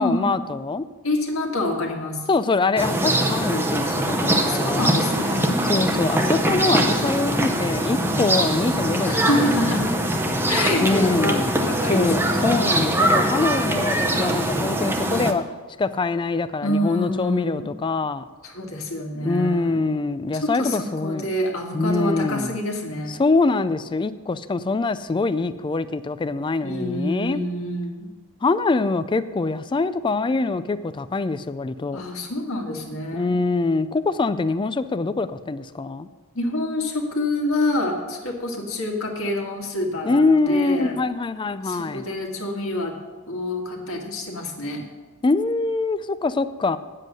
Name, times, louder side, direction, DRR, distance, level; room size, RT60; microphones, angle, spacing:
voice 1, 0.0-0.9 2.3-5.0 5.7-9.6 10.8-11.5 11.9-15.4 15.8-18.2 19.2-21.3 21.7-22.5 23.1-27.4 28.4-32.0 33.1-36.1 40.0-42.0 45.2-46.8, left 3 dB, 20° left, 14 dB, 0.3 m, -24 dB
voice 2, 1.0-2.2 4.4-5.6 9.1-9.9 10.5-12.5 16.6-17.7 18.4-19.8 20.4-23.2 26.6-28.1 31.9-33.4 36.3-40.9 41.6-42.9 43.3-44.9, left 1 dB, 65° left, 1 dB, 1.9 m, -27 dB
sound 1, 2.8-15.3, right 1 dB, 10° right, 0.7 m, -22 dB
9.2 x 7.7 x 6.2 m, 1.3 s
head